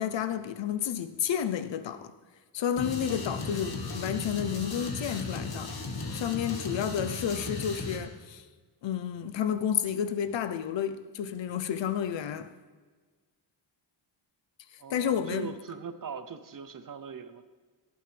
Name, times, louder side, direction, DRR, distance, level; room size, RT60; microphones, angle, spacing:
voice 1, 0.0-2.1 2.5-5.8 6.1-8.4 8.8-12.5 14.9-15.5, left 9 dB, 65° left, 0.8 m, -31 dB
sound 1, 2.8-8.0, left 3 dB, 50° left, 1.9 m, -36 dB
voice 2, 14.8-17.4, right 6 dB, 40° right, 0.8 m, -40 dB
17.5 x 10.5 x 3.4 m
wide cardioid pair, 135°, 48 cm